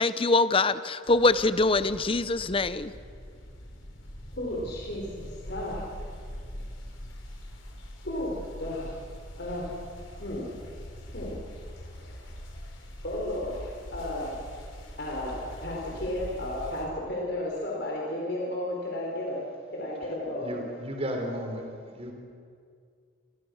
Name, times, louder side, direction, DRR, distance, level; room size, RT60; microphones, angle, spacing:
voice 1, 0.0-2.9, left 3 dB, 30° left, 14 dB, 0.7 m, -24 dB
sound 1, 1.0-16.9, equal, 85° left, 4.6 m, -43 dB
voice 2, 4.3-5.8 8.0-8.9 9.4-9.7 10.2-10.5 11.1-11.4 12.0-12.2 13.0-14.3 15.0-19.4 19.7-20.6, left 1 dB, 55° left, -3 dB, 4.7 m, -33 dB
voice 3, 20.4-21.6 21.9-22.1, equal, 30° right, 2 dB, 3.7 m, -34 dB
28.5 x 24.5 x 6.5 m, 2.2 s
head